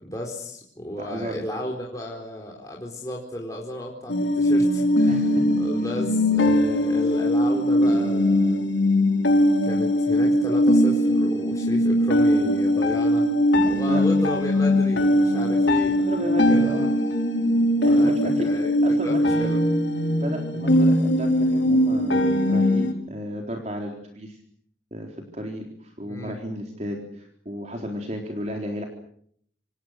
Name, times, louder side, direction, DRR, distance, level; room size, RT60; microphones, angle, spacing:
voice 1, 0.0-8.6 9.6-13.3 13.7-16.7 17.9-19.6 26.0-26.4, equal, 20° left, -1 dB, 4.2 m, -34 dB
voice 2, 1.0-1.4 5.1-5.6 13.9-14.0 16.0-16.9 17.8-18.5 18.8-19.4 20.2-24.4 24.9-28.9, equal, 40° right, 2 dB, 4.0 m, -33 dB
sound 1, 4.1-22.9, left 1 dB, 90° left, 5.7 m, -20 dB
28.0 x 27.0 x 6.7 m, 0.66 s
head